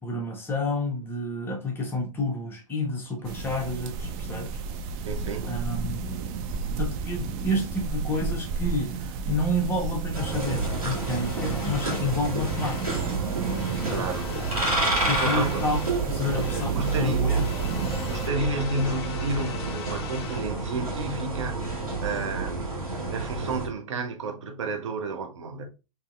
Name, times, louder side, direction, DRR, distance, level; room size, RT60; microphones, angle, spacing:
voice 1, 0.0-4.6 5.5-6.0 6.8-13.0 13.9-14.0 15.1-15.8 16.2-17.5 17.7-17.9, left 1 dB, 10° left, 0.8 m, -29 dB
sound 1, 3.2-18.3, right 5 dB, 25° right, 0.3 m, -33 dB
voice 2, 5.0-5.6 13.9-14.3 14.9-15.6 15.9-17.4 18.0-25.6, right 3 dB, 55° right, 0.7 m, -32 dB
sound 2, 10.1-23.7, right 3 dB, 80° right, 1.6 m, -29 dB
sound 3, 10.8-13.2 13.4-16.0 16.3-20.5, left 8 dB, 45° left, 0.4 m, -43 dB
3.8 x 2.8 x 2.4 m
figure-of-eight pair, 105°, 18 cm